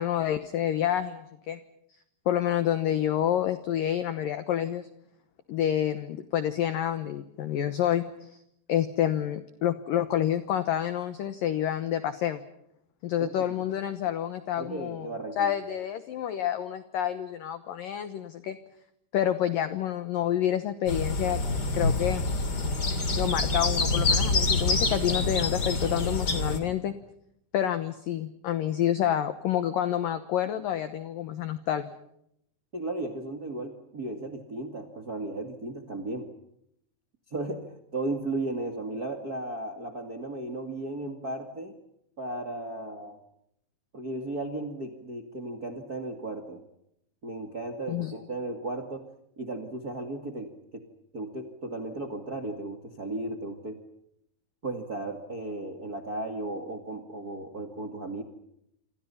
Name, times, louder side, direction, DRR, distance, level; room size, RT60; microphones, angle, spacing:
voice 1, 0.0-1.6 2.3-4.9 5.5-8.4 8.7-12.4 13.0-18.6 19.1-21.4 21.7-22.2 23.2-27.0 27.5-31.9 47.9-48.1, left 11 dB, 85° left, 12 dB, 1.9 m, -28 dB
voice 2, 14.6-15.5 32.7-36.3 37.3-37.7 37.9-41.7 42.2-43.2 43.9-46.6 47.2-49.0 49.4-50.8 51.1-53.8 54.6-58.2, right 2 dB, 45° right, 5 dB, 1.1 m, -35 dB
sound 1, 20.9-26.6, left 3 dB, 30° left, 2.3 m, -26 dB
28.0 x 26.0 x 5.6 m, 0.75 s
omnidirectional pair, 5.6 m